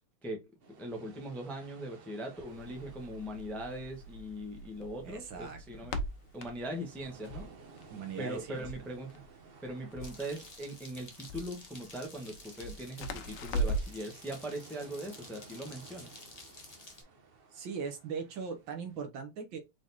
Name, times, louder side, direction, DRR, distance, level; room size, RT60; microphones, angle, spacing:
sound 1, 0.6-19.1, right 4 dB, 80° right, 0.5 m, -57 dB
voice 1, 0.8-6.0 6.3-7.5 8.2-9.2 9.6-16.1, right 1 dB, ahead, 0.7 m, -40 dB
Crackle, 2.5-14.0, right 1 dB, 85° left, 1.7 m, -40 dB
voice 2, 5.0-5.9 7.9-8.8 17.5-19.6, right 6 dB, 65° right, 1.6 m, -40 dB
sound 2, 10.0-17.0, left 2 dB, 25° left, 1.0 m, -52 dB
4.8 x 4.0 x 2.7 m
omnidirectional pair, 2.4 m